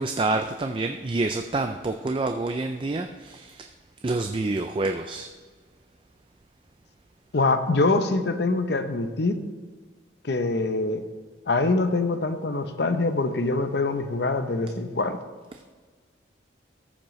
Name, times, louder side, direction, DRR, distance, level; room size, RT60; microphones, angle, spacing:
voice 1, 0.0-3.7 4.0-5.3, right 2 dB, 25° right, 6 dB, 0.3 m, -27 dB
voice 2, 7.3-9.4 10.2-11.0 11.5-15.2, left 3 dB, 60° left, 9 dB, 0.7 m, -24 dB
14.0 x 7.4 x 3.1 m, 1.5 s
head